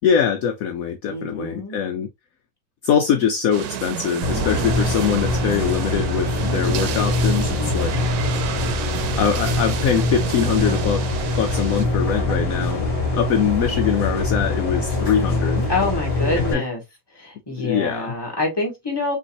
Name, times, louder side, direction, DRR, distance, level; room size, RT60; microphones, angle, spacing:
voice 1, 0.0-2.1 2.8-8.0 9.1-11.0 11.4-15.7 16.4-16.6 17.6-18.1, left 8 dB, 70° left, 1.0 m, -23 dB
voice 2, 1.1-1.8 7.6-8.2 15.7-16.8 17.1-19.1, left 2 dB, 15° left, 2.1 m, -26 dB
sound 1, 3.5-11.9, right 10 dB, 80° right, 1.1 m, -31 dB
sound 2, 4.2-16.5, left 2 dB, 40° left, 2.0 m, -23 dB
5.4 x 3.0 x 2.8 m
omnidirectional pair, 1.6 m